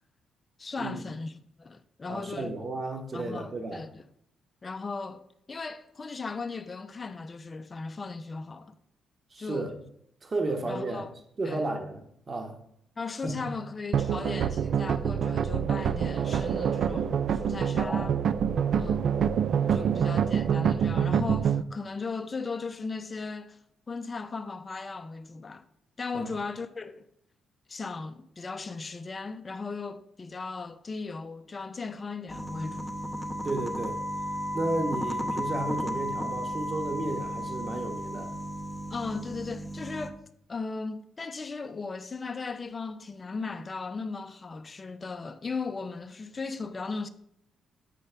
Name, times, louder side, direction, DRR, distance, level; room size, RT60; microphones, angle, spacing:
voice 1, 0.6-2.6 3.1-4.0 4.6-5.2 5.5-8.7 9.4-9.7 10.6-11.1 11.4-11.6 13.0-18.2 18.8-19.1 19.7-23.6 23.9-25.6 26.0-27.1 27.7-32.9 38.9-40.2 40.5-47.1, left 4 dB, 30° left, 0.5 m, -37 dB
voice 2, 2.1-3.8 9.3-9.7 10.2-11.1 11.4-12.5 13.2-13.5 17.8-18.2 19.7-20.1 26.1-26.3 33.4-34.0 34.5-38.3, right 2 dB, 35° right, 1.2 m, -33 dB
sound 1, 13.9-21.6, right 8 dB, 65° right, 0.3 m, -26 dB
sound 2, 32.3-40.1, equal, ahead, 0.8 m, -34 dB
8.2 x 5.4 x 3.3 m
cardioid pair, 90°, 0 cm